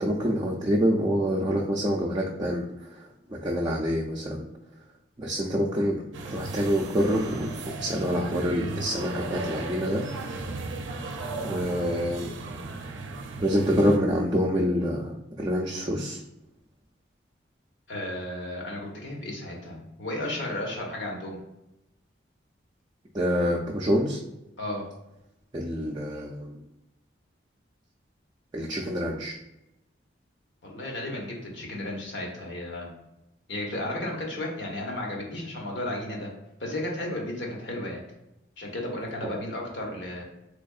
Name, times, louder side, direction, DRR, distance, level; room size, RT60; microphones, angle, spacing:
voice 1, 0.0-4.5 5.2-10.6 11.4-12.3 13.4-16.2 23.1-24.2 25.5-26.6 28.5-29.4 39.2-39.3, equal, 20° right, -3 dB, 0.3 m, -27 dB
sound 1, 6.1-14.0, right 3 dB, 85° right, 0.4 m, -36 dB
voice 2, 17.9-21.4 24.6-24.9 30.6-32.9 33.5-36.3 36.6-38.0 38.6-40.2, left 1 dB, 70° left, -1 dB, 1.0 m, -33 dB
3.5 x 3.3 x 2.3 m, 0.90 s
head